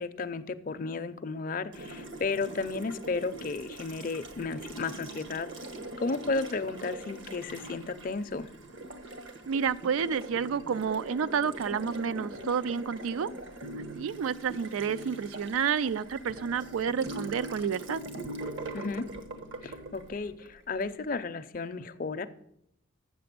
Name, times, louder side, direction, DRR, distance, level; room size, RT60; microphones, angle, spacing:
voice 1, 0.0-5.5 6.0-8.5 18.7-19.1 19.6-22.3, left 4 dB, 40° left, 10 dB, 0.5 m, -33 dB
Water tap faucet, 1.7-20.9, right 2 dB, 65° right, 1.2 m, -43 dB
sound 1, 1.8-2.9 4.8-5.8 7.5-8.6 10.3-11.4 13.0-20.4, right 1 dB, 40° right, 0.7 m, -47 dB
voice 2, 9.5-13.3 14.0-18.0, right 6 dB, 90° right, 17 dB, 0.4 m, -30 dB
7.7 x 6.8 x 6.7 m, 0.75 s
head